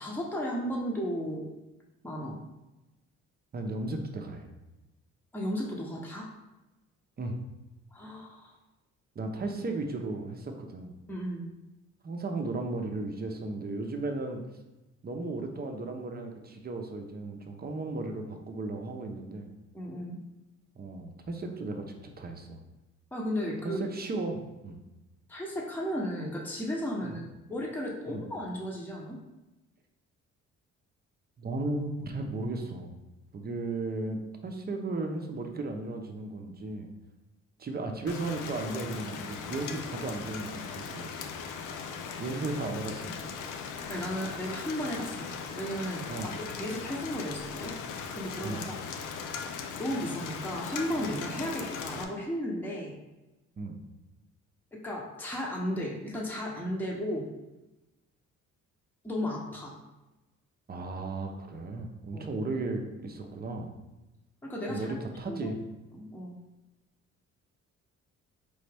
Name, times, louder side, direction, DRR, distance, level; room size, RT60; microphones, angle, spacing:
voice 1, 0.0-1.5 2.0-2.4 5.3-6.3 7.9-8.5 11.1-11.5 19.7-20.2 23.1-23.8 25.3-27.2 27.5-29.2 42.6-42.7 43.9-45.3 45.6-46.1 46.3-47.7 48.1-48.8 49.8-53.0 54.7-57.3 59.0-59.7 62.1-62.3 64.4-64.9 65.3-65.5 65.9-66.4, equal, 5° left, -3 dB, 0.9 m, -34 dB
voice 2, 3.5-4.5 7.2-7.4 9.2-10.9 12.0-14.4 15.0-19.5 20.8-21.9 22.2-22.6 23.6-24.8 27.0-27.2 28.1-28.2 31.4-32.9 33.3-36.9 37.6-41.2 42.2-43.4 46.1-46.3 48.4-48.7 53.6-53.8 60.7-63.7 64.7-65.6, right 2 dB, 30° right, 4 dB, 0.7 m, -35 dB
Rain, 38.1-52.0, left 6 dB, 85° left, 0.6 m, -39 dB
4.1 x 3.5 x 3.4 m, 1.0 s
cardioid pair, 90°, 30 cm